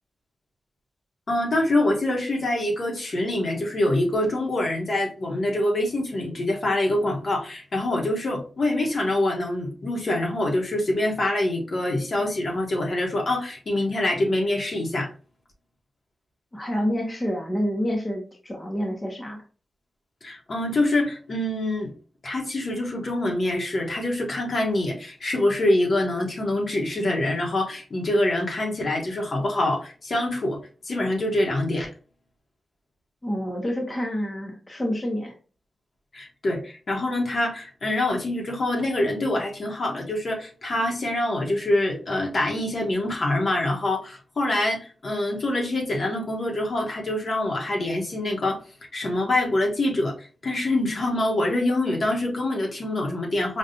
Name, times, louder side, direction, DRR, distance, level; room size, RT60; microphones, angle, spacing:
voice 1, 1.3-15.1 20.2-21.9 22.2-30.6 30.8-31.9 36.1-48.6 48.9-53.6, left 1 dB, 50° left, 0 dB, 1.1 m, -25 dB
voice 2, 16.5-19.4 33.2-35.4, equal, 20° left, -1 dB, 0.9 m, -28 dB
5.2 x 2.4 x 2.7 m, 0.37 s
wide cardioid pair, 135°, 0 cm